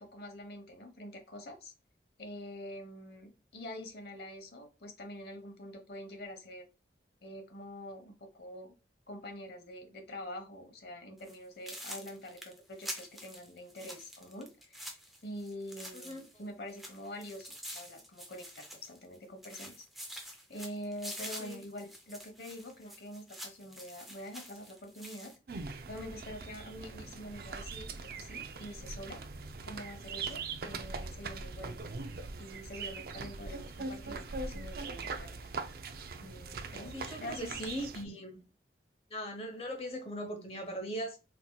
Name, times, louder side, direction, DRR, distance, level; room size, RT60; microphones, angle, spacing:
voice 1, 0.0-1.7 2.2-6.7 7.2-8.7 9.1-19.8 20.5-25.3 25.6-29.2 29.6-31.8 32.4-35.5 36.2-37.5, left 1 dB, 60° left, 0.9 m, -46 dB
sound 1, 11.2-11.4 11.7-16.4 16.7-19.2 19.4-25.4, equal, ahead, 0.5 m, -47 dB
voice 2, 15.9-16.2 21.4-21.6 36.9-38.4 39.1-41.2, equal, 30° left, 0.9 m, -39 dB
sound 2, 25.5-38.0, right 4 dB, 55° right, 0.4 m, -41 dB
4.3 x 2.8 x 2.2 m
head